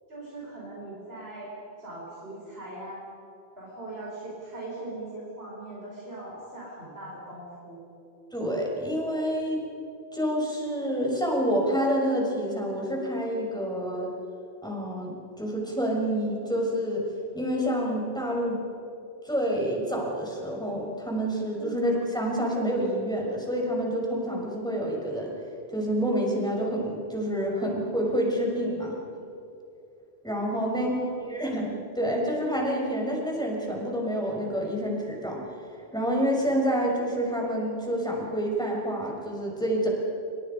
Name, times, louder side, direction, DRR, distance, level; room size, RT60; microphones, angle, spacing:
voice 1, 0.1-3.2 3.6-7.8 21.6-21.8 30.5-31.1, right 2 dB, 65° right, -5 dB, 5.5 m, -40 dB
voice 2, 8.3-9.6 10.1-14.1 14.6-17.0 17.3-18.6 19.2-25.3 25.7-29.0 30.2-30.9 31.2-35.4 35.9-39.9, equal, 5° left, -2 dB, 6.1 m, -28 dB
28.5 x 27.0 x 5.5 m, 2.8 s
omnidirectional pair, 1.1 m